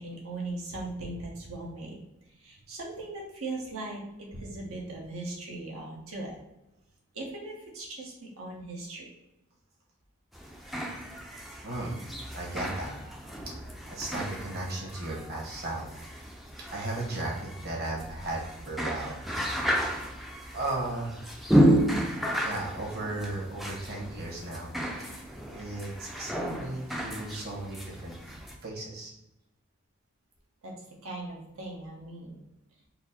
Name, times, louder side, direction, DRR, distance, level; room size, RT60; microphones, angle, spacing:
voice 1, 0.0-6.3 7.1-9.1 30.6-30.7 31.0-32.4, right 2 dB, 80° right, -2 dB, 1.1 m, -39 dB
sound 1, 10.3-28.6, equal, ahead, 0.3 m, -32 dB
voice 2, 11.6-12.0 12.3-12.9 13.6-16.1 16.7-19.8 20.5-21.2 22.4-28.2 28.6-29.1, right 2 dB, 45° right, -3 dB, 1.3 m, -36 dB
4.2 x 2.1 x 4.2 m, 0.91 s
head